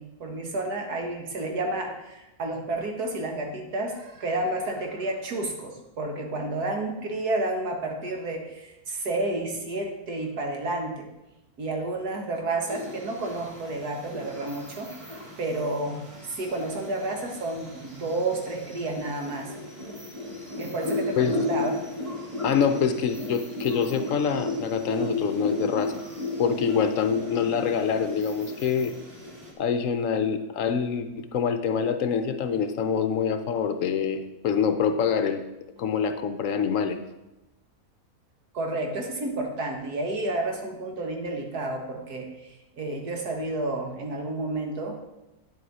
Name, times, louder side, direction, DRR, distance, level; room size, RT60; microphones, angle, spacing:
voice 1, 0.0-11.1 11.6-19.5 20.5-21.8 38.5-45.1, right 2 dB, 85° right, 2 dB, 1.9 m, -31 dB
sound 1, 12.7-29.5, left 2 dB, 20° right, 1.8 m, -35 dB
voice 2, 22.4-26.0 26.4-28.9 29.6-35.4 35.8-37.0, left 7 dB, 65° left, 9 dB, 1.0 m, -25 dB
9.3 x 7.9 x 4.1 m, 0.97 s
omnidirectional pair, 1.6 m